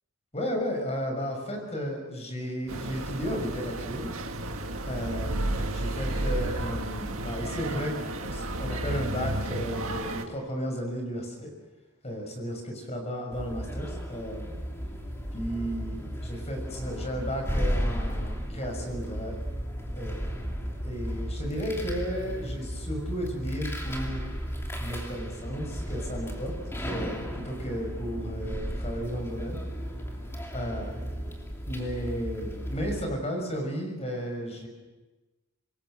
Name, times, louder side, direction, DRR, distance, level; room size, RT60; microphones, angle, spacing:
voice 1, 0.3-4.1 4.9-8.0 8.2-11.5 12.0-12.6 12.9-14.6 15.3-19.4 19.9-20.6 20.8-24.2 24.8-26.5 26.8-29.6 30.5-31.2 31.7-34.7, equal, 30° left, 3 dB, 6.1 m, -34 dB
sound 1, 2.7-10.2, right 1 dB, 75° right, 2.0 m, -32 dB
sound 2, 13.3-33.0, equal, 10° left, 2.9 m, -34 dB
26.5 x 22.0 x 6.3 m, 1.2 s
head